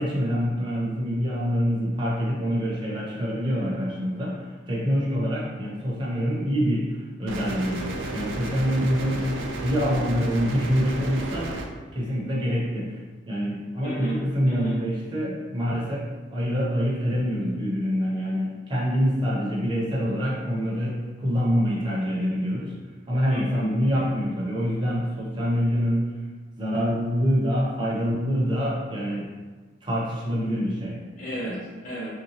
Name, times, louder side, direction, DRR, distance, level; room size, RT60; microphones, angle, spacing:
voice 1, 0.0-6.9 7.2-9.3 9.6-11.5 11.9-13.0 13.3-16.1 16.3-22.7 23.1-26.0 26.6-29.3 29.8-31.0 31.5-31.6, equal, 25° right, -5 dB, 0.6 m, -25 dB
sound 1, 7.3-11.7, right 2 dB, 85° right, 0.4 m, -32 dB
voice 2, 13.8-14.2 14.5-14.8 23.3-23.7 31.2-32.2, right 1 dB, 45° left, -8 dB, 1.0 m, -32 dB
3.1 x 2.8 x 2.8 m, 1.3 s
head